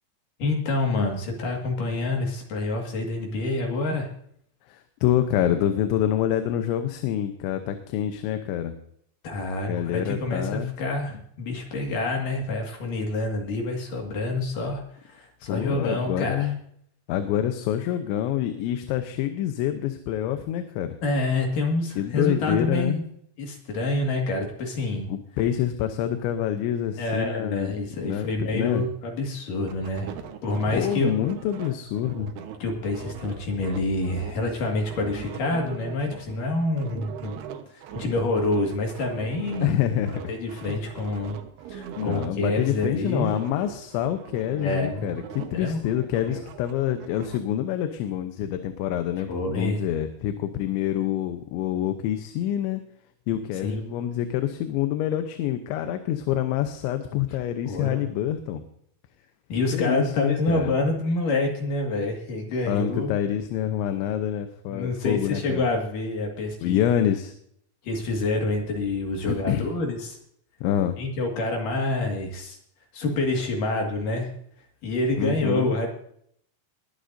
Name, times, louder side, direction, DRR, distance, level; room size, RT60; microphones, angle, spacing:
voice 1, 0.4-4.1 9.2-16.5 21.0-23.0 23.4-25.1 27.0-30.1 30.4-31.1 32.6-37.4 37.7-39.8 40.3-41.4 41.7-43.3 44.6-45.1 45.5-45.8 46.2-46.4 49.3-49.8 53.6-53.9 57.7-58.0 59.5-63.2 64.7-67.1 67.8-70.2 71.0-72.6 72.9-74.3 74.8-75.9, left 2 dB, 55° left, 2 dB, 3.2 m, -27 dB
voice 2, 4.7-8.7 9.7-10.7 15.5-16.6 17.1-21.0 22.0-23.0 25.1-28.8 30.7-32.3 39.6-40.3 40.7-40.8 42.0-52.8 53.3-58.6 59.7-60.7 62.7-65.6 66.6-67.3 69.3-69.7 70.6-71.0 75.2-75.7, left 11 dB, 85° left, 8 dB, 3.2 m, -26 dB
sound 1, 29.7-34.5 34.8-39.8 40.0-42.3 42.6-45.6 45.9-47.4, right 8 dB, 70° right, 2.9 m, -40 dB
21.5 x 11.5 x 2.7 m, 0.67 s
omnidirectional pair, 5.2 m